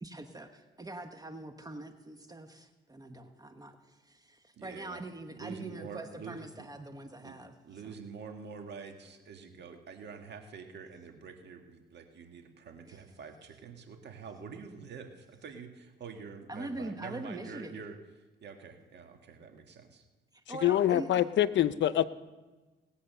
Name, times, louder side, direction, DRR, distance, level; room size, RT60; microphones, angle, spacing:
voice 1, 0.0-7.5 7.8-8.0 12.8-13.0 16.5-17.8 20.3-21.2, right 2 dB, 20° right, 7 dB, 1.1 m, -43 dB
voice 2, 4.6-5.0 5.3-6.7 7.2-7.4 7.6-18.0 18.4-20.0, right 5 dB, 60° right, 4 dB, 1.8 m, -46 dB
voice 3, 20.6-22.0, left 12 dB, 65° left, 15 dB, 0.7 m, -25 dB
19.0 x 8.3 x 6.7 m, 1.2 s
cardioid pair, 90°, 20 cm